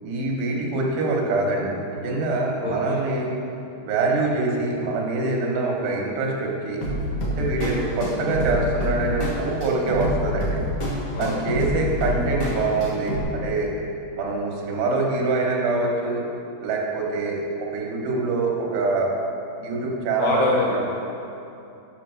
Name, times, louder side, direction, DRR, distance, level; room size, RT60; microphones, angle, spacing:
voice 1, 0.0-3.3 3.8-6.8 7.3-10.6 11.2-13.7 14.2-16.2 16.6-19.1 19.6-20.9, right 3 dB, 85° right, -1 dB, 3.4 m, -24 dB
voice 2, 2.6-3.0 7.6-7.7 11.1-11.4 20.2-21.0, left 3 dB, 80° left, -2 dB, 2.0 m, -25 dB
sound 1, 6.8-13.2, equal, 50° left, 1.6 m, -27 dB
8.3 x 5.6 x 6.3 m, 2.7 s
omnidirectional pair, 4.7 m